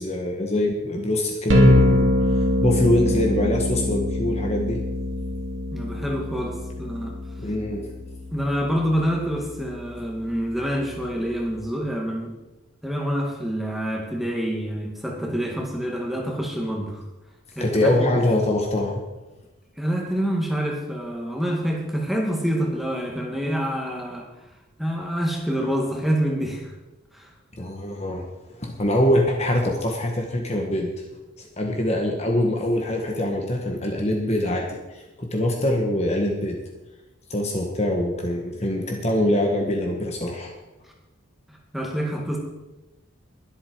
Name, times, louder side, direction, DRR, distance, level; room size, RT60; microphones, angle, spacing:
voice 1, 0.0-4.8 7.4-7.8 17.6-19.0 27.6-28.2 28.6-30.9 31.4-36.6 37.3-40.5, left 1 dB, 30° left, 1 dB, 1.6 m, -24 dB
sound 1, 1.5-11.5, left 1 dB, 65° right, 2.5 m, -24 dB
voice 2, 5.7-7.1 8.3-12.3 12.8-17.0 17.6-18.2 19.8-24.3 24.8-26.7 27.1-27.3 41.5-42.4, equal, ahead, 0 dB, 2.2 m, -27 dB
21.5 x 8.3 x 4.7 m, 1.1 s
head